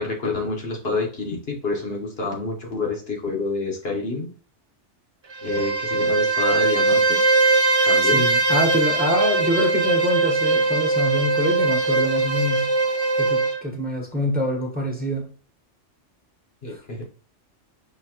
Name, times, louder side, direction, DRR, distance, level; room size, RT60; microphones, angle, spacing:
voice 1, 0.0-4.3 5.4-7.2 7.9-8.2 16.6-17.0, left 3 dB, 55° left, 1 dB, 1.5 m, -28 dB
Bowed string instrument, 5.3-13.6, right 3 dB, 40° right, 0.4 m, -20 dB
voice 2, 8.0-12.7 13.2-15.3 16.7-16.8, equal, 10° right, 0 dB, 1.1 m, -25 dB
5.6 x 3.0 x 3.0 m, 0.39 s
omnidirectional pair, 1.2 m